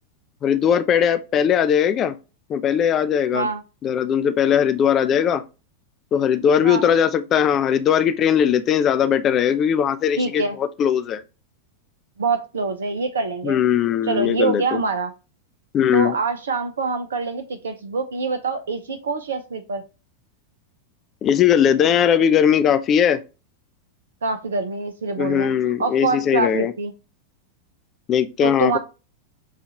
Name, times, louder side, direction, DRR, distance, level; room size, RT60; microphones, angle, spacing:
voice 1, 0.4-2.1 2.5-3.5 3.8-5.4 6.1-11.2 13.4-14.8 15.7-16.1 21.2-23.2 25.2-26.7 28.1-28.8, left 8 dB, 30° left, 0.4 m, -19 dB
voice 2, 10.2-10.6 12.2-13.6 14.0-15.1 15.9-19.8 24.2-25.5 25.8-26.9 28.4-28.8, right 4 dB, 65° right, 0.5 m, -25 dB
6.4 x 2.4 x 2.8 m
figure-of-eight pair, 90°, 0 cm